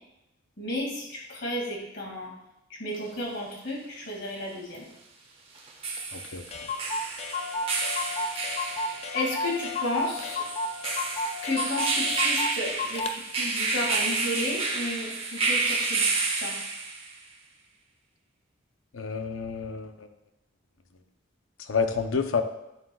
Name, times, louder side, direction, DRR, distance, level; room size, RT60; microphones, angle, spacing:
voice 1, 0.6-2.3 2.7-4.9 9.1-10.4 11.4-16.6, left 1 dB, 55° left, -1 dB, 2.1 m, -33 dB
sound 1, 2.9-3.0 5.6-17.2, right 3 dB, 30° right, 0.9 m, -30 dB
Clock, 6.0-6.1 6.2-6.3 6.5-13.2, left 2 dB, 30° left, 0.3 m, -33 dB
voice 2, 6.1-6.4 18.9-20.1 21.7-22.4, left 5 dB, 80° left, 7 dB, 0.6 m, -29 dB
Wind instrument woodwind instrument, 7.3-12.6, left 4 dB, 90° right, 1.6 m, -41 dB
8.6 x 7.6 x 2.3 m, 0.88 s
head